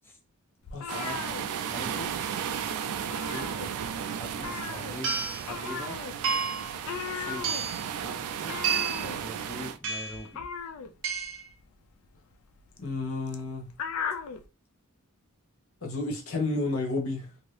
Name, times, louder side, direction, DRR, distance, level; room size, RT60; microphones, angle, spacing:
sound 1, 0.6-2.2 2.4-2.7 2.9-4.0 4.4-14.5, left 6 dB, 90° left, 0.4 m, -38 dB
voice 1, 0.9-1.2 1.6-2.1 3.3-3.6 4.2-6.0 7.2-7.5 8.0-8.7 9.1-10.4, equal, 10° left, 0.5 m, -42 dB
sound 2, 0.9-9.8, right 8 dB, 90° right, 0.3 m, -35 dB
sound 3, 4.2-4.3 5.0-5.4 6.2-6.7 7.4-7.9 8.6-9.1 9.8-10.2 11.0-11.5, right 6 dB, 65° right, 0.7 m, -30 dB
voice 2, 12.8-13.7 15.8-17.5, left 3 dB, 70° left, 0.9 m, -31 dB
2.7 x 2.6 x 3.1 m
head